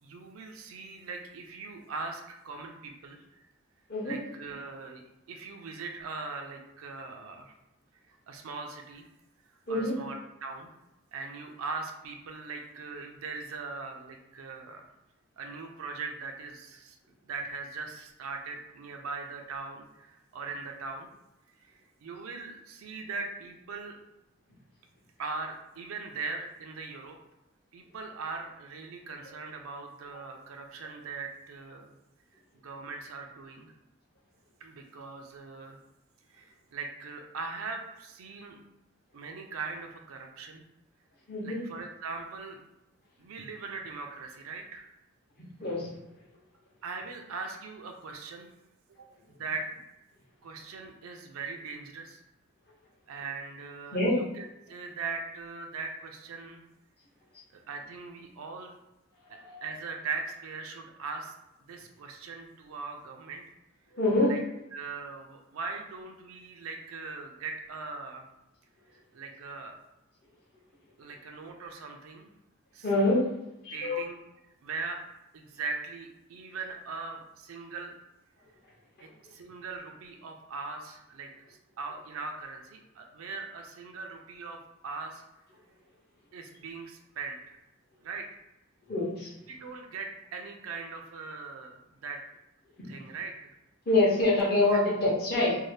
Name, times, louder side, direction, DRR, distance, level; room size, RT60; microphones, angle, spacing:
voice 1, 0.0-3.4 4.0-7.5 8.1-9.1 9.7-10.7 11.1-14.9 15.4-17.0 17.2-21.1 21.6-24.0 25.2-27.2 27.7-31.9 32.6-33.7 34.6-35.8 36.3-38.6 39.1-40.6 41.4-42.6 43.2-44.9 46.8-48.5 49.4-49.7 50.4-52.2 53.1-56.7 57.5-58.8 59.3-61.3 61.7-63.4 64.2-64.4 64.7-68.3 69.1-69.8 71.0-72.3 72.7-72.9 73.7-74.2 74.6-75.0 75.3-77.9 79.0-84.6 84.8-85.2 86.3-87.6 88.0-88.4 89.5-92.2 92.8-93.5, right 4 dB, 75° right, 3 dB, 0.4 m, -40 dB
voice 2, 41.3-41.6 45.6-45.9 53.9-54.2 59.4-59.6 63.9-64.3 72.8-73.2 73.6-74.0 88.9-89.3 93.9-95.6, left 2 dB, 45° left, -5 dB, 0.8 m, -25 dB
2.7 x 2.0 x 3.2 m, 0.91 s
head